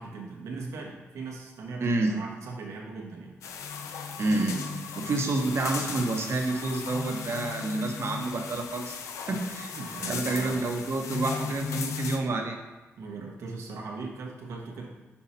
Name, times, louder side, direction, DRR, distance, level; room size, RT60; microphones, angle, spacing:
voice 1, 0.0-3.4 9.8-10.6 13.0-14.9, right 4 dB, 85° right, -1 dB, 1.2 m, -39 dB
voice 2, 1.8-2.1 4.2-4.7 5.0-9.0 9.3-12.6, right 2 dB, 60° right, 3 dB, 1.0 m, -29 dB
sound 1, 3.4-12.2, left 6 dB, 85° left, 0.6 m, -37 dB
5.9 x 4.7 x 4.2 m, 1.1 s
supercardioid pair, 55°, 5 cm